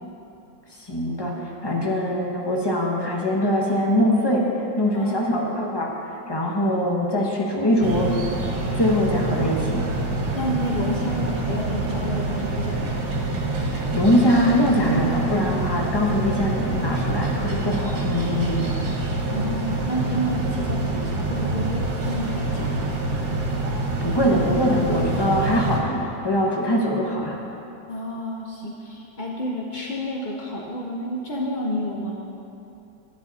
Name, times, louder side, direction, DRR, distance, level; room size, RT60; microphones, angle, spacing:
voice 1, 0.8-4.5 4.8-8.1 8.8-9.8 13.7-18.8 23.7-27.4, equal, 15° left, -2 dB, 0.9 m, -23 dB
sound 1, 7.8-25.8, right 2 dB, 50° right, 1.6 m, -26 dB
voice 2, 10.3-13.0 19.3-22.9 27.9-32.2, equal, 65° left, -2 dB, 0.4 m, -30 dB
12.0 x 10.0 x 4.1 m, 2.9 s
omnidirectional pair, 2.0 m